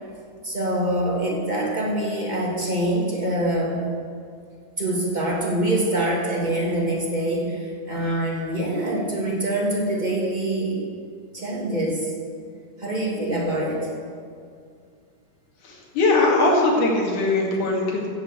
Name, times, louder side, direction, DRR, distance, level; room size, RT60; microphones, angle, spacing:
voice 1, 0.4-3.9 4.8-10.8 11.3-12.1 12.8-13.9, right 1 dB, 15° right, -3 dB, 2.0 m, -25 dB
voice 2, 15.6-18.1, left 2 dB, 75° left, -1 dB, 3.9 m, -20 dB
15.0 x 8.1 x 8.0 m, 2.2 s
omnidirectional pair, 3.6 m